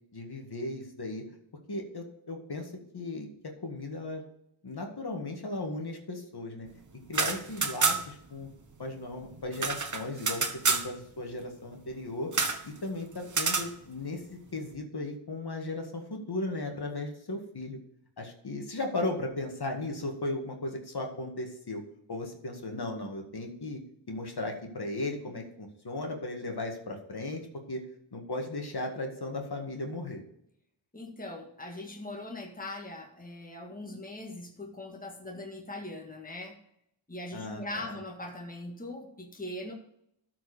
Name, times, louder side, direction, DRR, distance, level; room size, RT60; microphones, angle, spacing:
voice 1, 0.1-1.2 1.7-3.3 3.6-4.2 4.6-6.7 7.1-8.5 8.8-12.3 12.6-17.8 18.2-21.8 22.1-23.8 24.1-27.4 27.7-27.8 28.1-30.2 37.3-38.0, left 2 dB, 50° left, 2 dB, 1.9 m, -36 dB
sound 1, 7.0-8.3 8.5-8.6 8.9-10.9 12.3-12.6 13.3-13.7, right 4 dB, 40° right, 1.3 m, -28 dB
voice 2, 30.9-36.6 37.1-39.7, left 1 dB, 15° left, 2 dB, 1.6 m, -41 dB
12.5 x 4.8 x 5.0 m, 0.74 s
wide cardioid pair, 65°, 49 cm